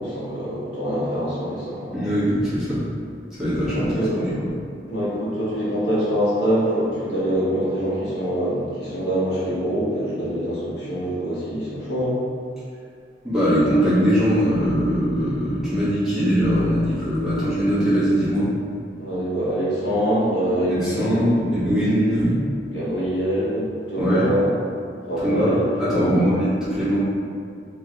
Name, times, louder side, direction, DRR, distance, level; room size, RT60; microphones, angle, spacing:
voice 1, 0.0-2.1 3.7-4.2 4.9-12.2 19.0-21.3 22.6-24.5 25.0-26.4, equal, 80° left, -8 dB, 1.2 m, -24 dB
voice 2, 1.9-2.8 3.4-4.2 13.2-18.5 20.7-22.4 24.0-24.3 25.2-26.5 26.8-27.0, equal, ahead, -13 dB, 1.3 m, -21 dB
3.7 x 3.1 x 2.9 m, 2.3 s
head